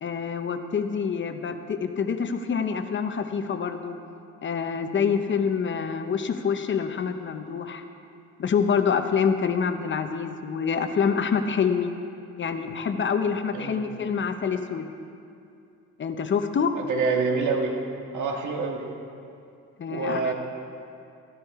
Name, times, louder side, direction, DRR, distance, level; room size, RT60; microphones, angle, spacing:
voice 1, 0.0-4.0 4.4-7.8 8.4-11.9 12.4-14.9 16.0-16.7 19.8-20.3, left 6 dB, 40° left, 7 dB, 0.7 m, -26 dB
voice 2, 16.7-17.7 18.1-18.8 19.9-20.3, right 4 dB, 75° right, 2 dB, 1.7 m, -26 dB
14.0 x 11.0 x 4.8 m, 2.5 s
cardioid pair, 130°, 30 cm